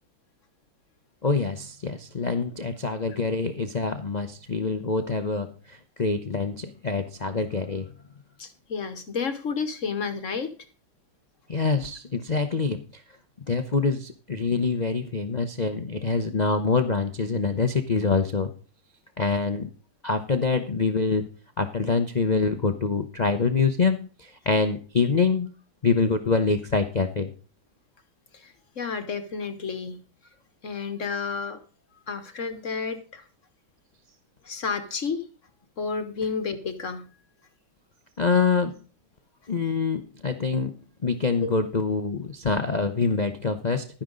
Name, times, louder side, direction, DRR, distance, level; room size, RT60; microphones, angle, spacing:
voice 1, 1.2-7.9 11.5-12.8 13.5-18.5 19.2-19.7 20.0-21.3 21.6-25.5 25.8-27.3 38.2-38.8 39.5-40.7 41.0-43.9, left 4 dB, 75° left, 8 dB, 0.4 m, -25 dB
voice 2, 8.4-10.5 28.3-30.0 30.6-31.6 32.1-33.2 34.4-35.3 35.8-37.1 41.4-41.5, left 5 dB, 45° left, 10 dB, 1.2 m, -31 dB
12.0 x 10.0 x 3.9 m, 0.37 s
omnidirectional pair, 2.2 m